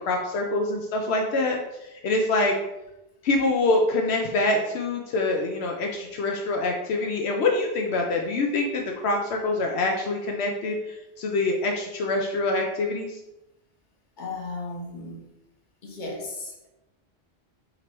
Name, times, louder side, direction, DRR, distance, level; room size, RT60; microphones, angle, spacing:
voice 1, 0.1-1.6 1.9-2.6 3.2-13.2, left 2 dB, 80° left, 1 dB, 0.9 m, -25 dB
voice 2, 14.2-15.3 15.8-16.7, left 3 dB, 50° left, -1 dB, 1.1 m, -35 dB
3.8 x 3.0 x 4.4 m, 0.92 s
omnidirectional pair, 1.1 m